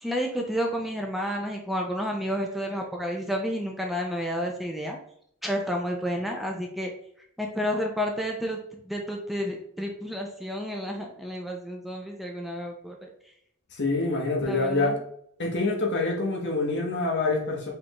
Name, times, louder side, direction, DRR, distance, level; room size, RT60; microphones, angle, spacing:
voice 1, 0.0-5.0 5.4-6.9 7.4-13.1 14.4-15.0, equal, ahead, 0 dB, 0.5 m, -30 dB
voice 2, 13.7-14.9 15.4-17.7, left 3 dB, 55° left, 0 dB, 1.2 m, -26 dB
5.1 x 3.5 x 3.0 m, 0.69 s
head